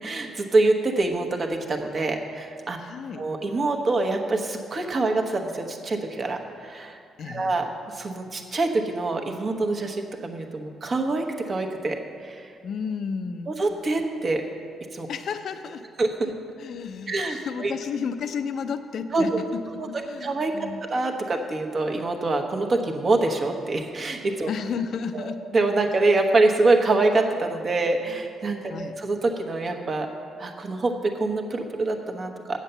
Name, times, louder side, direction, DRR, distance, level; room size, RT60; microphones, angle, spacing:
voice 1, 0.0-2.8 3.2-7.0 7.3-7.6 7.9-12.5 13.5-14.4 14.9-15.1 16.0-16.3 17.1-17.7 19.1-19.4 19.8-20.5 20.9-24.5 25.1-30.1 30.4-32.6, right 2 dB, 40° right, 3 dB, 1.1 m, -25 dB
voice 2, 2.8-3.3 7.2-7.5 12.6-13.5 15.1-15.9 16.6-20.8 24.5-25.4 28.7-29.0, left 6 dB, 65° left, 9 dB, 0.5 m, -32 dB
8.0 x 7.3 x 6.8 m, 2.2 s
cardioid pair, 100°, 0 cm